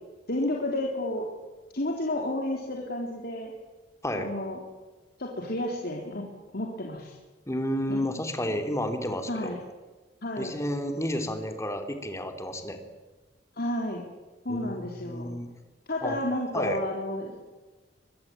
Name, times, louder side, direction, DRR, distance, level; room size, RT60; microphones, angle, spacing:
voice 1, 0.3-1.3 1.7-3.5 4.1-4.6 5.2-6.3 6.5-7.2 7.9-8.0 8.5-8.6 9.3-9.6 10.2-10.5 13.6-14.0 14.4-15.3 15.9-17.4, left 1 dB, 60° left, 0 dB, 3.7 m, -31 dB
voice 2, 7.5-9.6 10.4-12.8 14.5-14.7 15.0-15.5 16.0-16.2 16.5-16.8, equal, 15° left, 6 dB, 3.2 m, -31 dB
24.5 x 21.5 x 8.9 m, 1.2 s
head